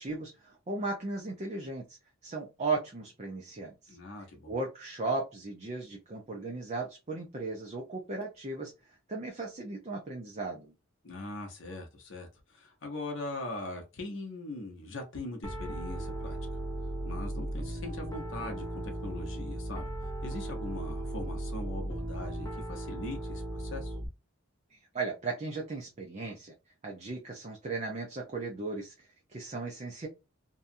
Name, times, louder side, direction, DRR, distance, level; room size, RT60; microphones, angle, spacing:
voice 1, 0.0-2.0 2.2-4.0 4.5-10.7 24.7-26.5 26.8-30.1, right 3 dB, 30° right, 0.5 m, -36 dB
voice 2, 3.9-4.5 11.0-16.4 17.0-19.9 20.2-24.0, left 2 dB, 55° left, 0.7 m, -41 dB
Piano, 15.4-24.1, right 1 dB, 15° left, 0.6 m, -37 dB
2.8 x 2.3 x 2.5 m
head